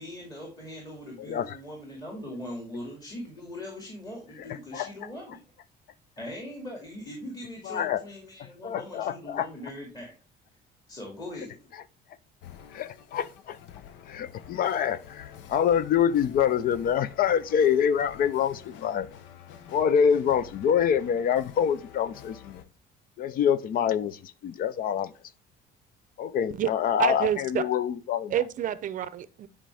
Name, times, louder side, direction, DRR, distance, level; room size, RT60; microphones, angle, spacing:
voice 1, 0.0-5.4 6.2-10.1 10.9-11.6, left 1 dB, 20° left, 2.2 m, -40 dB
voice 2, 1.2-1.6 4.7-4.9 7.7-8.0 8.6-9.5 12.7-13.6 14.1-19.1 19.7-22.6 23.2-25.1 26.2-27.3 27.5-28.3, left 8 dB, 50° left, 0.5 m, -26 dB
sound 1, 12.4-22.6, left 9 dB, 90° left, 0.8 m, -48 dB
voice 3, 27.0-27.6 28.3-29.5, right 10 dB, 45° right, 0.6 m, -28 dB
10.0 x 5.0 x 3.4 m
cardioid pair, 135°, 19 cm